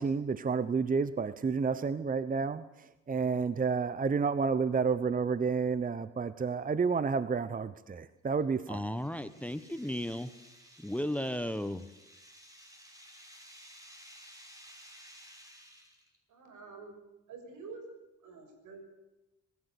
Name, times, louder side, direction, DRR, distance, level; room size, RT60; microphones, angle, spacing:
voice 1, 0.0-8.8, right 5 dB, 30° right, 15 dB, 0.9 m, -30 dB
sound 1, 8.4-16.2, equal, 10° right, 5.5 m, -55 dB
voice 2, 8.7-10.3 10.8-11.8, left 1 dB, 5° left, 14 dB, 1.0 m, -35 dB
voice 3, 16.3-16.9 17.3-17.8 18.2-18.8, right 4 dB, 80° right, 5 dB, 6.6 m, -47 dB
26.0 x 15.5 x 8.5 m, 0.97 s
cardioid pair, 90°, 30 cm